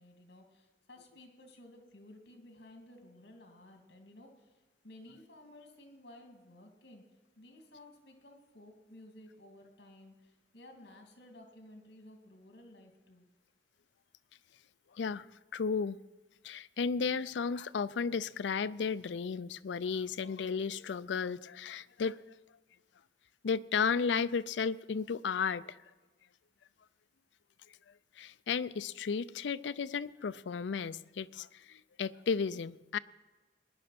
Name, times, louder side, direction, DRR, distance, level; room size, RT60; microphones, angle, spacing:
voice 1, 0.0-13.2, left 1 dB, 65° left, 4 dB, 2.6 m, -55 dB
voice 2, 14.9-15.3 15.5-16.0 16.4-22.2 23.4-25.8 28.2-33.0, left 5 dB, 85° left, 16 dB, 0.4 m, -34 dB
19.5 x 10.5 x 5.9 m, 1.3 s
head